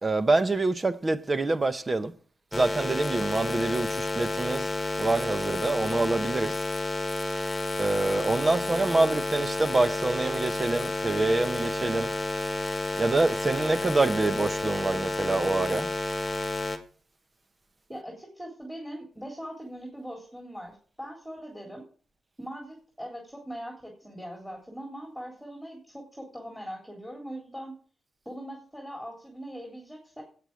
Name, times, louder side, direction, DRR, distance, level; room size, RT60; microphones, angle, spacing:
voice 1, 0.0-2.1 2.5-4.7 5.0-6.6 7.8-12.1 13.0-15.9, right 2 dB, 30° right, 0.9 m, -26 dB
sound 1, 2.5-16.8, left 2 dB, 15° left, 1.6 m, -30 dB
voice 2, 17.9-21.8 22.4-27.8 28.3-30.2, equal, 5° right, 3.7 m, -41 dB
8.6 x 7.9 x 9.1 m
wide cardioid pair, 115°, 0 cm